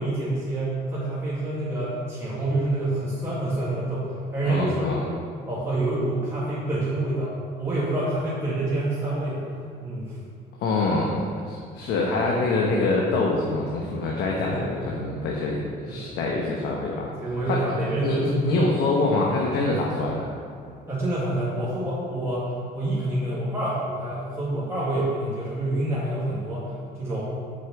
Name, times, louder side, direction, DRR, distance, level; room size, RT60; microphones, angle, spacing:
voice 1, 0.0-4.9 5.5-7.3 7.6-9.5 9.8-10.2 14.5-14.7 15.9-16.1 17.2-18.7 20.9-27.2, right 1 dB, 15° right, -9 dB, 2.0 m, -27 dB
voice 2, 4.4-5.0 10.6-11.2 11.4-16.9 17.5-17.6 18.0-20.3, left 3 dB, 80° left, -2 dB, 1.1 m, -25 dB
6.5 x 5.6 x 7.0 m, 2.2 s
cardioid pair, 110°, 17 cm